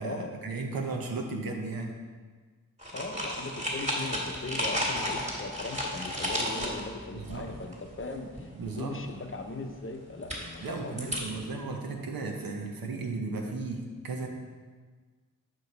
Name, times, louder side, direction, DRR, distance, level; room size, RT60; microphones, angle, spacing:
voice 1, 0.0-2.0 7.1-7.5 8.5-9.0 10.6-14.3, right 3 dB, 85° right, 2 dB, 0.9 m, -35 dB
sound 1, 2.8-8.0 8.4-8.7 10.2-11.4, equal, 20° right, 1.8 m, -33 dB
voice 2, 2.9-11.4, left 3 dB, 35° left, 5 dB, 0.7 m, -39 dB
6.3 x 4.9 x 4.0 m, 1.5 s
cardioid pair, 55°, 34 cm